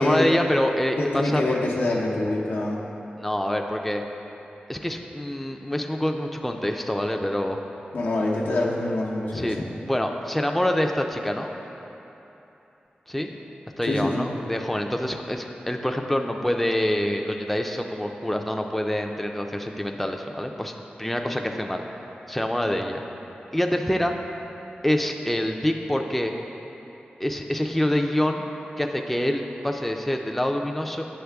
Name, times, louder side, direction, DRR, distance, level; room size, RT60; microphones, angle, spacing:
voice 1, 0.0-1.6 3.2-4.0 4.7-7.6 9.3-11.5 13.1-13.3 13.8-20.7 21.0-21.8 22.3-23.0 23.5-24.2 24.8-26.3 27.2-28.4 28.8-31.1, left 1 dB, 5° left, 3 dB, 0.4 m, -26 dB
voice 2, 1.0-2.8 7.9-9.7 13.9-14.2, left 2 dB, 85° left, -3 dB, 0.8 m, -25 dB
7.9 x 5.7 x 3.4 m, 3.0 s
wide cardioid pair, 90°, 3 cm